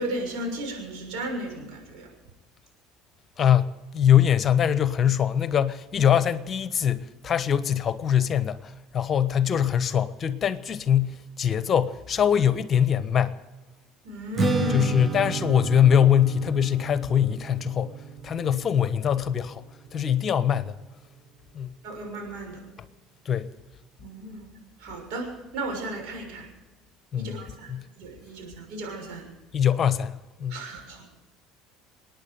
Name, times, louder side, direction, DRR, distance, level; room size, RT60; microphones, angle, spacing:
voice 1, 0.0-2.1 14.0-14.9 21.8-22.6 24.0-24.5 24.8-26.5 27.2-29.3 30.5-31.0, right 1 dB, 65° right, 6.4 m, -34 dB
voice 2, 3.4-13.4 14.7-18.0 18.2-19.6 19.9-20.8 21.5-21.7 23.2-23.5 27.1-27.4 27.7-27.8 29.5-30.6, left 9 dB, 40° left, 1.1 m, -23 dB
Strum, 14.4-20.7, right 4 dB, 25° right, 1.5 m, -32 dB
28.5 x 9.6 x 5.2 m
hypercardioid pair, 65°, 0 cm